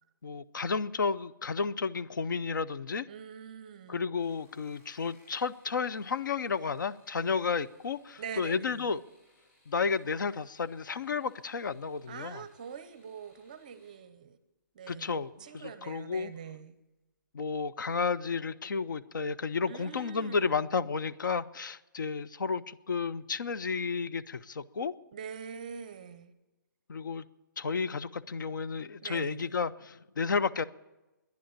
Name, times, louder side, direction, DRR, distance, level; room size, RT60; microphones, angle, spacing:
voice 1, 0.2-3.1 3.9-9.0 9.7-12.4 14.9-16.3 17.3-24.9 26.9-27.2 27.6-30.6, left 5 dB, 65° left, 0.6 m, -32 dB
voice 2, 3.1-4.0 8.2-8.9 12.1-14.4 14.7-16.7 19.7-20.6 25.1-26.3 29.0-29.5, right 7 dB, 25° right, 0.6 m, -44 dB
sound 1, 4.1-14.0 15.2-15.7 16.1-16.6 16.8-16.9, left 1 dB, 40° left, 6.8 m, -67 dB
11.5 x 10.5 x 8.8 m
hypercardioid pair, 180°, 11 cm